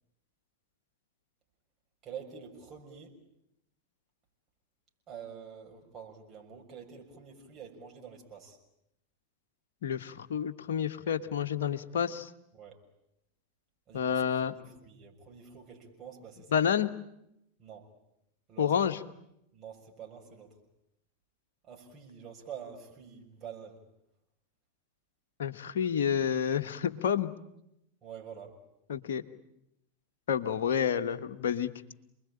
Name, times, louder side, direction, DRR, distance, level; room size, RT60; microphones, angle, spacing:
voice 1, 2.0-3.1 5.1-8.6 12.5-12.8 13.9-14.3 14.5-16.6 17.6-17.9 18.5-18.7 19.5-20.6 21.6-23.8 28.0-28.6, right 7 dB, 30° right, 1 dB, 6.5 m, -47 dB
voice 2, 9.8-12.3 13.9-14.5 16.5-16.9 18.6-19.0 25.4-27.3 28.9-29.2 30.3-31.7, left 8 dB, 60° left, 7 dB, 1.4 m, -29 dB
28.5 x 21.0 x 8.8 m, 0.82 s
figure-of-eight pair, 90°, 0 cm